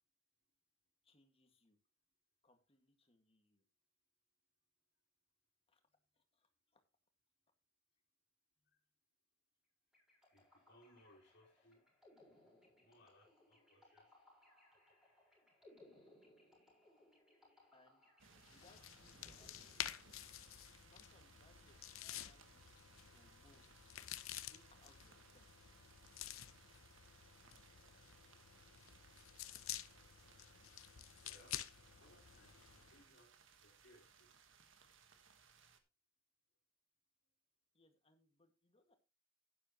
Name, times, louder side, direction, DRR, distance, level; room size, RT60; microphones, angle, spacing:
voice 1, 1.0-1.8 2.4-3.6 5.7-5.8 6.1-6.8 17.7-18.1 18.5-19.8 20.8-23.7 24.5-25.5 37.7-39.0, left 2 dB, 30° left, 5 dB, 1.9 m, -72 dB
sound 1, 9.9-20.4, left 1 dB, ahead, 6.8 m, -68 dB
voice 2, 10.3-11.9 12.8-14.1 15.2-15.5 16.2-16.3 17.6-17.7 31.2-34.3, left 1 dB, 55° left, -3 dB, 3.0 m, -68 dB
sound 2, 18.2-35.8, right 5 dB, 70° right, 1.5 m, -66 dB
sound 3, 18.4-33.0, left 12 dB, 90° left, 0.7 m, -51 dB
11.5 x 10.0 x 3.0 m, 0.27 s
head